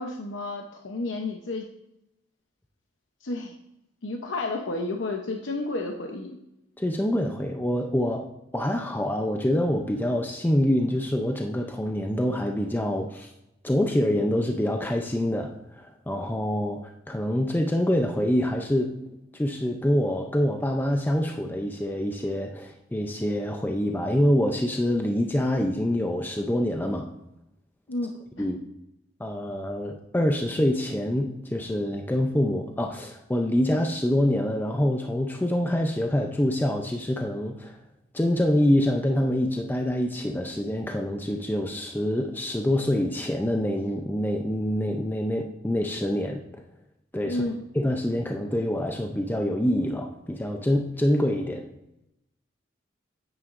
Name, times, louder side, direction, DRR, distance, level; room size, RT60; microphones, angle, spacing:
voice 1, 0.0-1.7 3.2-3.5 4.0-6.4 27.9-28.5 47.2-47.6, left 2 dB, 80° left, 3 dB, 0.8 m, -31 dB
voice 2, 6.8-8.3 8.5-13.3 13.6-19.0 19.3-27.1 28.4-28.6 29.2-37.8 38.1-46.4 47.1-47.4 47.7-51.7, left 1 dB, 10° left, 3 dB, 0.5 m, -26 dB
9.3 x 8.9 x 2.5 m, 0.86 s
head